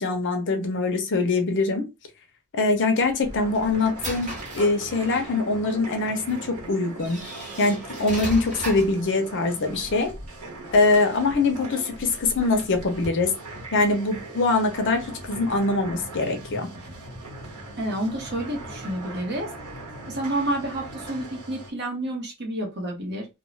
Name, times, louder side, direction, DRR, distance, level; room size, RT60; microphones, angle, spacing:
voice 1, 0.0-1.9 2.5-7.2 7.6-10.1 10.7-13.3 13.7-16.7, left 3 dB, 55° left, 0.7 m, -23 dB
sound 1, 3.0-5.4 6.3-6.4 7.0-9.0, right 1 dB, 35° right, 1.2 m, -36 dB
sound 2, 3.2-21.7, right 2 dB, 90° right, 1.0 m, -40 dB
voice 2, 17.8-19.5 20.1-23.3, right 1 dB, 50° right, 1.0 m, -29 dB
2.5 x 2.2 x 3.1 m
head